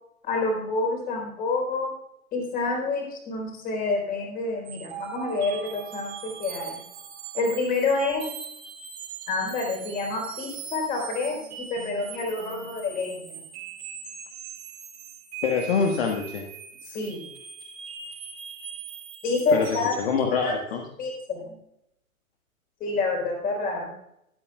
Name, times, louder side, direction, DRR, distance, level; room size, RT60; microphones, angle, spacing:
voice 1, 0.2-1.9 2.3-6.8 7.3-8.2 9.3-13.4 16.8-17.2 19.2-20.0 20.4-20.6 21.0-21.6 22.8-23.9, left 3 dB, 20° left, 2 dB, 4.3 m, -28 dB
sound 1, 4.7-20.1, right 7 dB, 45° right, 3.3 m, -41 dB
voice 2, 15.4-16.5 19.5-19.7 20.0-20.8, left 5 dB, 45° left, 3 dB, 1.6 m, -25 dB
23.5 x 8.7 x 2.4 m, 0.80 s
figure-of-eight pair, 115°, 43 cm